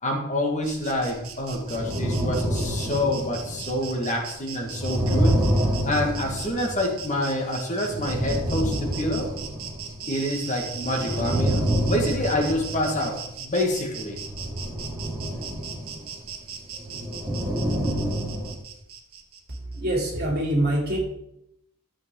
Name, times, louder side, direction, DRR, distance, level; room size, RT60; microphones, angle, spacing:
voice 1, 0.0-5.4 5.8-9.3 10.1-14.2, left 1 dB, 35° left, 1 dB, 1.8 m, -27 dB
Insect, 0.6-19.8, right 7 dB, 70° right, 1.4 m, -40 dB
sound 1, 1.6-3.9 4.6-7.3 7.8-10.2 10.6-13.4 14.0-18.5, equal, 10° right, 2.0 m, -27 dB
voice 2, 19.5-21.0, right 1 dB, 45° right, -1 dB, 3.1 m, -25 dB
13.0 x 7.4 x 3.9 m, 0.79 s
head